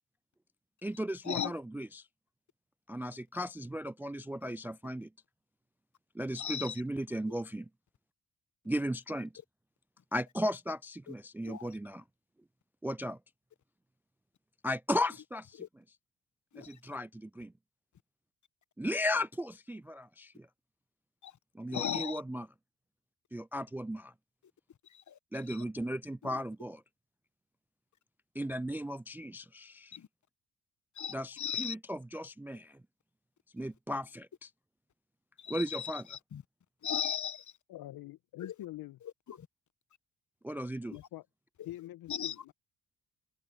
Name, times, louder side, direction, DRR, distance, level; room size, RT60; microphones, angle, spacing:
voice 1, 0.8-2.1 2.9-5.1 6.1-7.7 8.7-9.3 10.1-12.0 12.8-13.2 14.6-15.6 16.6-17.5 18.8-20.5 21.5-22.5 23.3-24.1 25.3-26.8 28.4-30.0 31.1-32.8 33.5-34.5 35.5-36.0 40.4-41.0, equal, 5° right, 0.3 m, -36 dB
voice 2, 6.4-6.8 11.1-11.2 11.4-11.7 15.6-15.7 16.5-16.8 21.2-21.4 21.7-22.2 24.9-25.2 25.5-25.6 26.3-26.4 29.9-30.1 30.9-31.7 35.4-36.4 36.8-37.5 38.4-38.5 39.3-39.5 41.6-41.7 42.1-42.3, left 9 dB, 50° left, 1.4 m, -37 dB
voice 3, 37.7-39.0 40.9-41.3 41.6-42.5, left 15 dB, 70° left, 1.4 m, -45 dB
hypercardioid pair, 50°, 37 cm